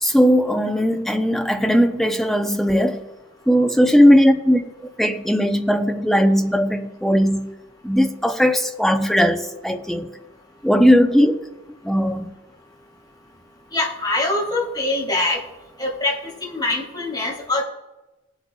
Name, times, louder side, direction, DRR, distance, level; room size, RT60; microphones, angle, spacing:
voice 1, 0.0-3.0 3.5-7.5 7.8-10.1 10.6-11.5 11.8-12.3, equal, ahead, 0.7 m, -18 dB
voice 2, 13.7-15.4 15.8-17.6, left 2 dB, 20° left, 3.2 m, -23 dB
20.5 x 8.1 x 2.4 m
head